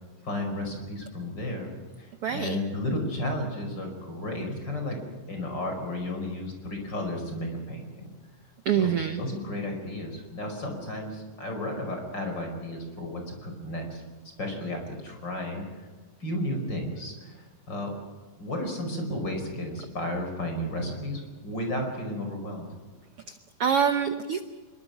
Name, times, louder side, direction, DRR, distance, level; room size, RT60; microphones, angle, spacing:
voice 1, 0.2-1.7 2.0-5.0 5.3-8.1 8.8-8.9 9.2-14.0 14.4-15.9 16.2-18.0 18.4-22.7, left 1 dB, 30° left, 3 dB, 5.7 m, -33 dB
voice 2, 2.2-2.6 8.6-9.2 23.3-24.4, right 8 dB, 80° right, 9 dB, 1.3 m, -26 dB
25.5 x 23.0 x 6.0 m, 1.4 s
omnidirectional pair, 3.9 m